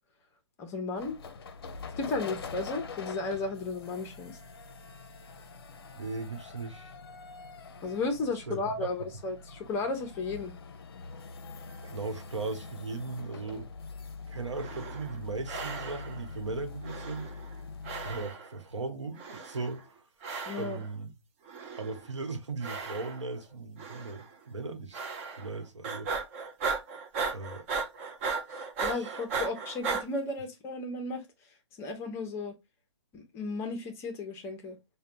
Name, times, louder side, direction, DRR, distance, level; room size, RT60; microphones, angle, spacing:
voice 1, 0.6-1.2 2.0-4.4 7.8-10.5 20.5-20.8 28.5-31.3 31.8-32.5 33.1-34.8, left 3 dB, 15° left, 0.7 m, -34 dB
sound 1, 1.0-18.3, left 4 dB, 55° left, 0.6 m, -44 dB
voice 2, 5.9-7.0 8.5-8.9 11.8-13.7 14.3-17.3 18.0-19.8 20.5-21.1 21.7-25.0 25.4-26.1 27.3-27.7 28.8-29.2, right 3 dB, 85° right, 1.1 m, -38 dB
sound 2, 14.5-15.2 15.5-16.3 16.8-17.6 17.8-18.6 19.2-19.8 20.2-20.9 21.5-22.1 22.6-23.4 23.8-24.3 24.9-25.6 25.8-30.0, right 4 dB, 30° right, 0.6 m, -36 dB
5.2 x 2.2 x 2.5 m
hypercardioid pair, 145°, 15 cm